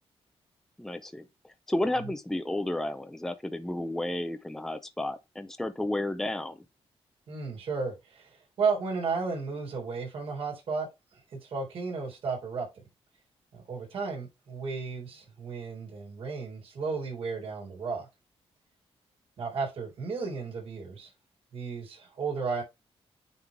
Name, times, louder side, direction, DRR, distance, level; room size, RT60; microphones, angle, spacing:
voice 1, 0.8-1.2 1.7-6.6, left 1 dB, 5° left, 0.5 m, -32 dB
voice 2, 7.3-10.9 11.4-12.7 13.5-18.1 19.4-21.1 21.5-22.6, right 4 dB, 65° right, 3.7 m, -33 dB
9.3 x 3.8 x 3.3 m
wide cardioid pair, 170°, 10 cm